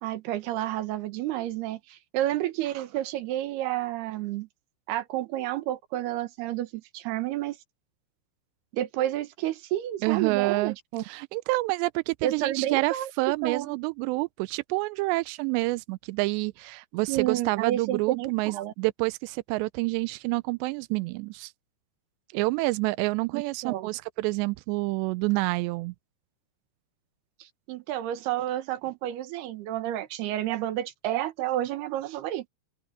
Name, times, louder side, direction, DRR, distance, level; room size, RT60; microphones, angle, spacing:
voice 1, 0.0-4.5 4.9-7.6 8.7-11.0 12.2-13.1 13.4-13.8 17.1-18.7 23.3-23.9 27.4-32.5, right 13 dB, 65° right, 3.0 m, -30 dB
voice 2, 10.0-10.8 11.0-21.5 22.3-25.9, right 23 dB, 85° right, 2.5 m, -28 dB
open air
omnidirectional pair, 5.5 m